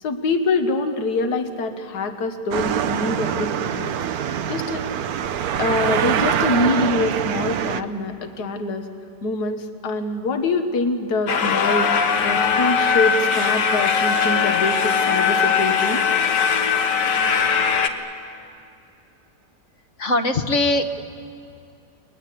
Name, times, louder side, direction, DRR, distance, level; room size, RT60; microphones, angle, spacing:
voice 1, 0.0-3.9 4.5-4.8 5.6-8.9 9.2-16.0, left 3 dB, 70° left, 6 dB, 1.9 m, -25 dB
sound 1, 2.5-7.8, right 9 dB, 65° right, 1.2 m, -24 dB
sound 2, 11.3-17.9, left 6 dB, 85° left, 1.8 m, -20 dB
voice 2, 20.0-20.8, left 2 dB, 50° left, 7 dB, 1.5 m, -20 dB
30.0 x 21.5 x 8.4 m, 2.6 s
omnidirectional pair, 1.8 m